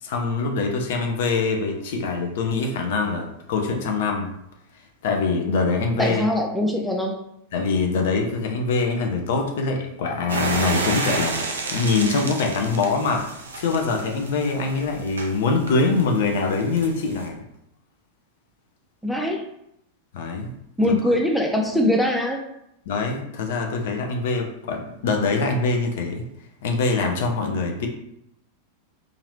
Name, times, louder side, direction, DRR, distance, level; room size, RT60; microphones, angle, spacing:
voice 1, 0.0-4.3 5.0-6.2 7.5-13.3 13.6-17.4 20.1-20.5 20.8-21.2 22.9-26.3 26.6-27.9, left 4 dB, 55° left, 3 dB, 0.5 m, -24 dB
voice 2, 6.0-7.2 19.0-19.4 20.8-22.5, left 1 dB, ahead, 1 dB, 0.4 m, -22 dB
sound 1, 10.3-17.3, right 3 dB, 70° right, 0.4 m, -31 dB
2.8 x 2.4 x 3.1 m, 0.78 s
figure-of-eight pair, 90°, 0 cm